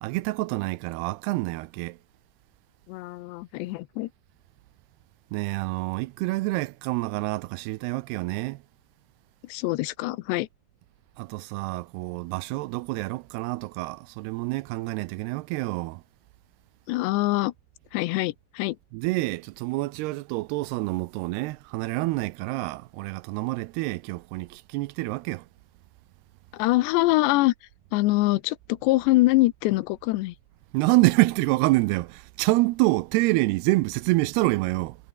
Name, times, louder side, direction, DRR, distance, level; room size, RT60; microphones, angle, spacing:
voice 1, 0.0-2.0 5.3-8.6 11.2-16.0 18.9-25.4 30.7-35.0, right 21 dB, 80° right, 2.5 m, -27 dB
voice 2, 2.9-4.1 9.5-10.5 16.9-17.5 17.9-18.8 26.5-27.5 27.9-30.3, left 19 dB, 90° left, 3.0 m, -24 dB
omnidirectional pair, 4.9 m